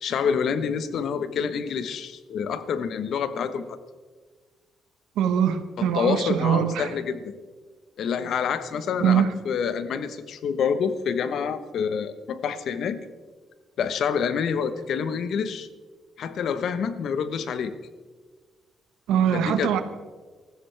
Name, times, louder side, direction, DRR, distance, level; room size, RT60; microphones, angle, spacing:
voice 1, 0.0-3.6 5.8-7.3 8.0-13.0 13.8-15.7 16.2-17.7 19.3-19.8, left 6 dB, 70° left, 12 dB, 1.1 m, -27 dB
voice 2, 5.2-6.9 9.0-9.3 19.1-19.8, right 9 dB, 90° right, 9 dB, 1.2 m, -22 dB
20.0 x 14.5 x 3.4 m, 1.5 s
cardioid pair, 90°, 0 cm